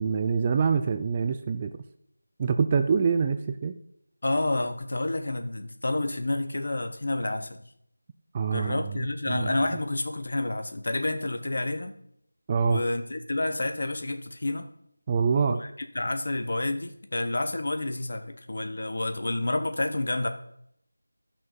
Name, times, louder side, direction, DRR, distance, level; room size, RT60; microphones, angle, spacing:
voice 1, 0.0-1.7 2.4-3.8 8.3-8.9 9.3-9.8 12.5-12.8 15.1-15.6, right 6 dB, 15° right, 8 dB, 0.3 m, -25 dB
voice 2, 4.2-7.6 8.5-11.9 12.6-14.7 15.5-15.7 15.9-20.3, left 2 dB, 50° left, 7 dB, 1.2 m, -29 dB
12.5 x 6.0 x 5.3 m, 0.73 s
figure-of-eight pair, 175°, 0 cm